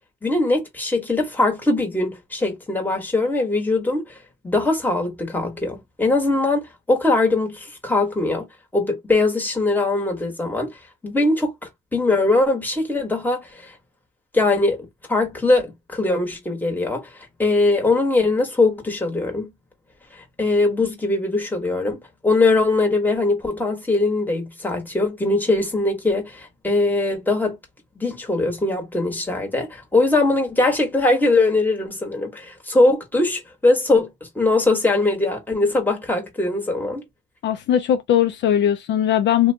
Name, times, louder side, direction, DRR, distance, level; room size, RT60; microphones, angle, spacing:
voice 1, 0.2-4.2 4.4-8.4 8.7-10.7 11.0-11.5 11.9-13.7 14.3-14.8 15.1-17.1 17.4-19.5 20.4-22.0 22.2-27.6 28.0-34.1 34.3-37.0, left 2 dB, 10° left, 1.3 m, -21 dB
voice 2, 37.4-39.5, left 10 dB, 65° left, 0.4 m, -19 dB
2.7 x 2.2 x 2.7 m
cardioid pair, 90°, 20 cm